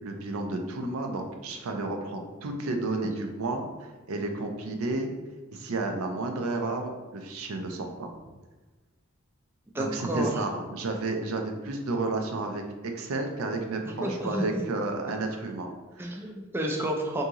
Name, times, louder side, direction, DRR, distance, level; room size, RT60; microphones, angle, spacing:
voice 1, 0.0-5.1 5.5-8.1 9.8-16.2, right 2 dB, 90° right, 4 dB, 0.5 m, -32 dB
voice 2, 9.7-10.4 14.0-14.6 16.0-17.2, right 1 dB, 10° right, 1 dB, 0.3 m, -30 dB
2.8 x 2.7 x 3.6 m, 1.3 s
head